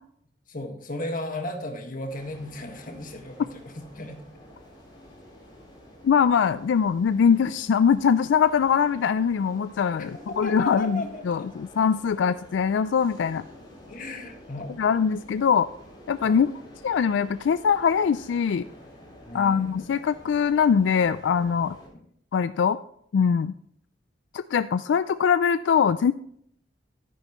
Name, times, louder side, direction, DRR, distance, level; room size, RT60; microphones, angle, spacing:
voice 1, 0.5-4.2 10.0-11.5 13.9-14.8 16.2-16.4 19.2-19.8 21.9-22.0, left 1 dB, 50° left, 4 dB, 1.6 m, -35 dB
sound 1, 2.1-21.9, equal, 25° left, 4.0 m, -49 dB
voice 2, 6.0-13.4 14.8-15.7 16.1-16.5 16.8-18.6 19.3-21.8 22.3-22.8 23.1-23.5 24.3-26.1, left 7 dB, 85° left, 13 dB, 0.3 m, -22 dB
13.0 x 9.9 x 3.0 m, 0.67 s
head